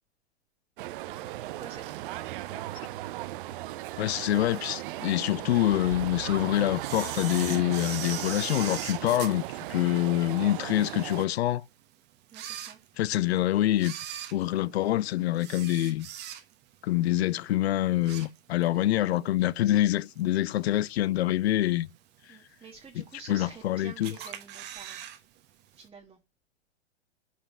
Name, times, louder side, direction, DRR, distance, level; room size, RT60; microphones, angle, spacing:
sound 1, 0.8-11.2, right 16 dB, 50° right, 0.5 m, -37 dB
voice 1, 1.0-2.7 12.3-12.8 22.3-25.0 25.7-26.2, right 5 dB, 15° right, 1.3 m, -49 dB
voice 2, 4.0-9.4 9.7-11.6 13.0-14.0 14.3-16.1 16.8-21.9 22.3-22.4 23.3-24.1, left 14 dB, 70° left, 0.5 m, -26 dB
Camera, 6.8-10.4 10.9-11.0 11.7-11.8 12.2-13.3 13.7-16.7 17.1-17.4 17.7-18.8 19.1-19.2 20.2-20.3 20.9-21.3 21.7-21.8 22.0-22.1 22.2-22.3 23.1-23.6 24.0-25.2 25.4-25.5 25.8-25.9, right 11 dB, 30° right, 1.0 m, -40 dB
5.7 x 4.8 x 6.0 m
hypercardioid pair, 115°, 33 cm